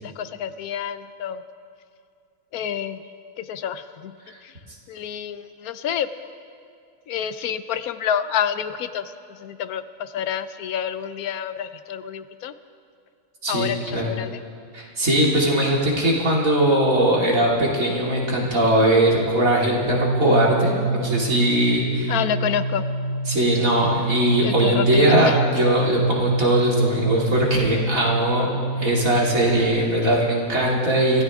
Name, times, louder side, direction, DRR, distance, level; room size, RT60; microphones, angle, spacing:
voice 1, 0.0-1.4 2.5-3.0 3.4-4.1 4.4-4.5 4.9-6.1 7.1-12.5 13.5-14.4 22.1-22.8 24.4-25.4, left 8 dB, 75° left, 12 dB, 1.1 m, -28 dB
voice 2, 13.4-14.1 14.7-22.2 23.3-28.5 28.8-31.2, right 1 dB, 60° right, -4 dB, 3.1 m, -20 dB
sound 1, 19.8-29.6, right 3 dB, 50° left, 5.8 m, -26 dB
25.0 x 16.0 x 3.6 m, 2.4 s
omnidirectional pair, 1.6 m